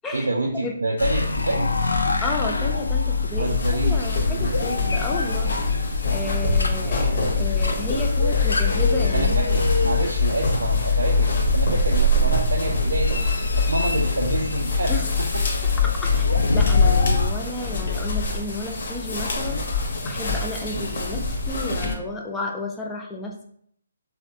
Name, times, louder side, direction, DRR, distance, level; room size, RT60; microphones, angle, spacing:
voice 1, 0.1-1.7 3.2-4.6 5.2-5.4 6.9-7.3 9.1-15.4 19.4-19.5, right 2 dB, 85° right, 0 dB, 0.4 m, -28 dB
sound 1, 1.0-17.3, left 3 dB, 85° left, 0.4 m, -23 dB
voice 2, 2.2-5.6 6.1-9.5 14.9-15.1 15.8-23.4, left 2 dB, 10° left, 1 dB, 0.4 m, -32 dB
sound 2, 3.5-21.9, left 3 dB, 55° left, 0.7 m, -28 dB
3.3 x 2.1 x 2.6 m, 0.65 s
figure-of-eight pair, 145°, 0 cm